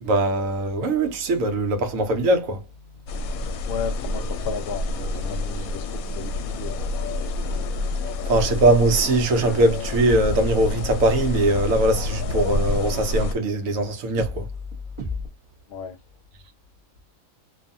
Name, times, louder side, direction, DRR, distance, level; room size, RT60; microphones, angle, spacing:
voice 1, 0.0-2.6 8.3-14.5, right 2 dB, 75° right, 1.1 m, -21 dB
sound 1, 3.1-13.4, left 2 dB, 85° left, 1.0 m, -28 dB
voice 2, 3.7-7.5 15.7-16.0, left 6 dB, 60° left, 0.6 m, -35 dB
sound 2, 10.1-11.5 11.8-15.3, left 3 dB, 30° right, 0.7 m, -35 dB
2.6 x 2.4 x 2.5 m
omnidirectional pair, 1.4 m